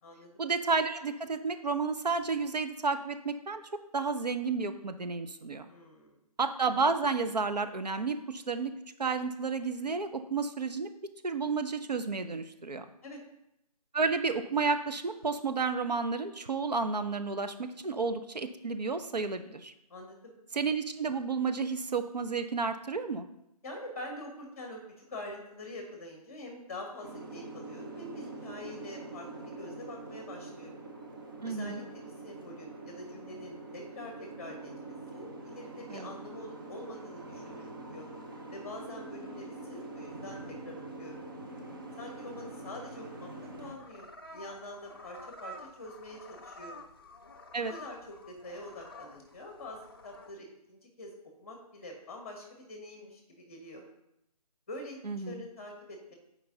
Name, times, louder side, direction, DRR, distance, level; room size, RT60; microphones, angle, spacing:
voice 1, 0.4-3.6 3.9-5.7 6.4-8.7 9.0-10.9 11.2-12.8 13.9-19.7 20.5-23.3 31.4-31.8 35.9-36.1 47.5-47.7 55.0-55.4, right 4 dB, 85° right, 8 dB, 0.8 m, -31 dB
voice 2, 5.6-6.2 13.0-13.2 19.9-20.3 23.6-30.8 31.4-38.1 38.5-41.2 42.0-43.3 43.6-46.8 47.7-51.1 51.4-53.8 54.7-55.0 55.2-56.1, left 1 dB, 20° left, 2 dB, 1.3 m, -45 dB
Boat Water vehicle, 27.0-43.8, right 2 dB, 35° right, 0.8 m, -45 dB
sound 1, 43.4-50.3, left 1 dB, 35° left, 0.5 m, -50 dB
8.1 x 4.7 x 3.8 m, 0.83 s
figure-of-eight pair, 170°, 21 cm